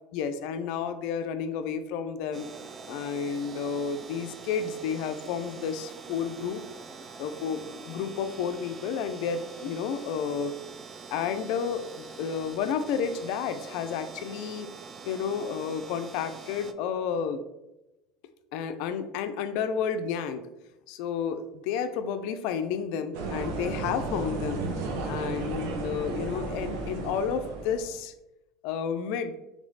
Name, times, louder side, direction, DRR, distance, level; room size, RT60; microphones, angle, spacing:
voice 1, 0.1-2.5 2.9-6.6 7.2-10.5 11.1-14.7 15.1-17.4 18.5-20.4 20.9-24.6 25.1-28.1 28.6-29.3, left 7 dB, 70° left, 9 dB, 0.4 m, -31 dB
sound 1, 2.3-16.7, right 4 dB, 35° right, 0.4 m, -44 dB
sound 2, 23.1-27.9, right 3 dB, 70° right, 0.7 m, -33 dB
3.3 x 3.1 x 3.9 m, 0.96 s
hypercardioid pair, 90°, 0 cm